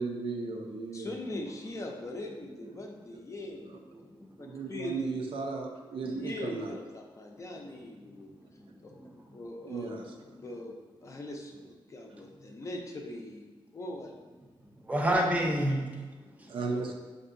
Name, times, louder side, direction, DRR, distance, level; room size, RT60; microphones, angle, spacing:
voice 1, 0.0-1.1 3.7-3.8 4.5-6.7 9.6-10.0 16.5-16.9, right 4 dB, 70° right, 0.5 m, -35 dB
voice 2, 0.9-3.7 4.4-5.1 6.1-8.3 8.8-8.9 9.3-14.1, left 1 dB, 35° left, 0.5 m, -41 dB
voice 3, 3.4-4.7 6.0-6.2 7.5-9.4 10.4-10.5 12.1-12.6 14.6-16.7, right 1 dB, 15° right, 0.6 m, -34 dB
6.3 x 2.6 x 2.6 m
wide cardioid pair, 145°, 9 cm